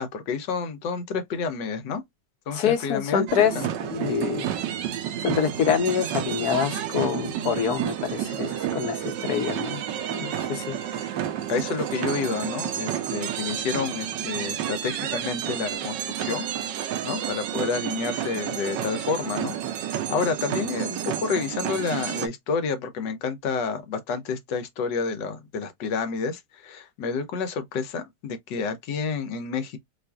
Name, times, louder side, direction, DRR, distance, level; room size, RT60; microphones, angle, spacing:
voice 1, 0.0-2.0 2.5-3.3 3.5-3.7 11.5-16.5 17.0-29.8, left 5 dB, 85° left, 1.5 m, -29 dB
voice 2, 2.5-3.5 3.8-4.5 5.2-9.8 10.1-10.8, left 7 dB, 65° left, 1.2 m, -26 dB
sound 1, 3.3-22.3, right 10 dB, 85° right, 1.3 m, -30 dB
4.4 x 2.5 x 2.3 m
omnidirectional pair, 1.9 m